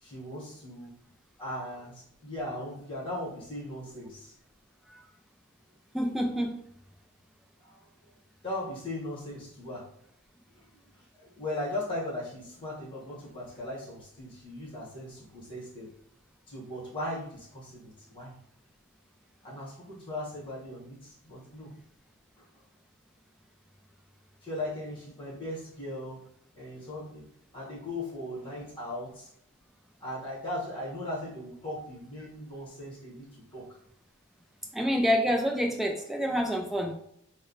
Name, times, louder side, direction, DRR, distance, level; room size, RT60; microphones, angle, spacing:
voice 1, 0.0-0.9 1.4-4.3 7.6-7.8 8.4-9.9 10.5-10.6 10.9-15.9 16.5-18.3 19.4-21.7 24.4-26.2 26.5-27.2 27.5-29.3 30.0-33.8, left 1 dB, 20° left, -6 dB, 1.3 m, -38 dB
voice 2, 5.9-6.5 34.7-36.9, equal, ahead, 1 dB, 0.4 m, -27 dB
3.1 x 2.1 x 3.9 m, 0.70 s
head